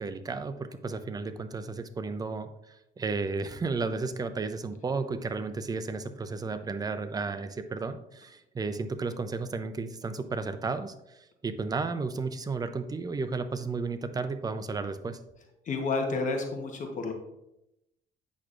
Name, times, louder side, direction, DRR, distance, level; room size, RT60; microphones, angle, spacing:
voice 1, 0.0-15.2, right 4 dB, 20° right, 10 dB, 0.5 m, -33 dB
voice 2, 15.6-17.1, left 3 dB, 50° left, 4 dB, 1.1 m, -30 dB
8.4 x 6.0 x 2.5 m, 0.87 s
cardioid pair, 110°, 17 cm